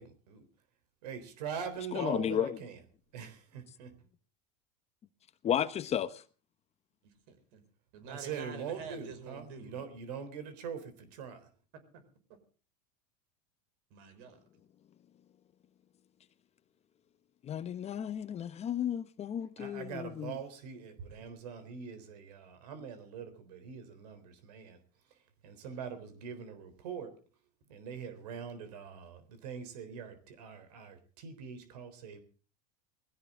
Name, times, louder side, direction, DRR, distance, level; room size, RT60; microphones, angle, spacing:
voice 1, 1.0-2.8 3.1-3.9 8.1-11.5 19.6-24.8 25.4-27.1 27.7-32.2, right 7 dB, 80° right, 3.7 m, -43 dB
voice 2, 1.9-2.6 5.4-6.2 17.4-20.4, left 9 dB, 35° left, 1.1 m, -33 dB
voice 3, 7.0-7.6 7.9-9.8 11.9-12.0 13.9-14.4 21.1-21.2, right 5 dB, 65° right, 5.6 m, -47 dB
20.5 x 16.5 x 3.7 m
supercardioid pair, 110°, 20 cm